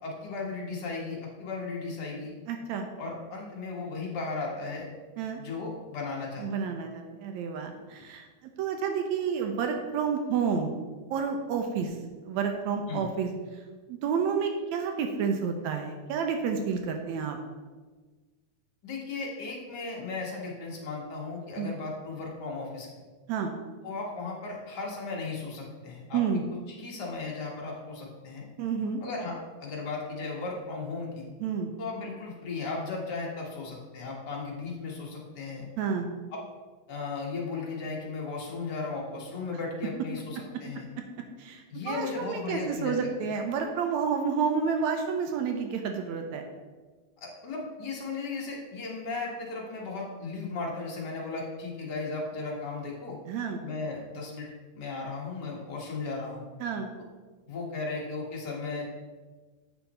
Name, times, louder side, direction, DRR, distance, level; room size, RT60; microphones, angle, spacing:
voice 1, 0.0-2.3 3.0-4.9 5.4-6.5 12.9-13.0 18.8-22.9 23.8-26.2 26.8-28.4 29.0-31.3 31.8-35.7 36.3-36.4 36.9-40.8 41.7-42.9 47.2-53.2 53.6-54.5 54.7-56.4 57.5-58.8, left 3 dB, 45° left, -2 dB, 1.6 m, -36 dB
voice 2, 2.5-2.9 5.2-5.4 6.4-10.7 11.1-12.0 12.2-13.6 13.9-17.4 21.6-21.7 23.3-23.5 26.1-26.4 28.6-29.0 31.4-31.7 35.8-36.1 40.4-40.5 41.4-46.4 53.3-53.6 56.6-56.9, right 6 dB, 75° right, 4 dB, 1.9 m, -30 dB
8.0 x 5.8 x 4.2 m, 1.4 s
omnidirectional pair, 3.4 m